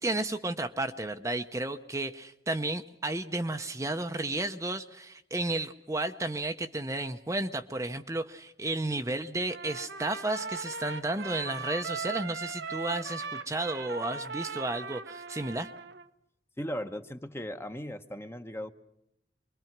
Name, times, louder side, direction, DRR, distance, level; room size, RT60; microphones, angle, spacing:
voice 1, 0.0-15.7, right 2 dB, 15° right, 6 dB, 0.7 m, -33 dB
Trumpet, 9.5-16.1, right 4 dB, 80° right, 1.0 m, -39 dB
voice 2, 16.6-18.7, equal, 15° left, 8 dB, 1.0 m, -37 dB
25.0 x 22.5 x 6.0 m, 0.82 s
head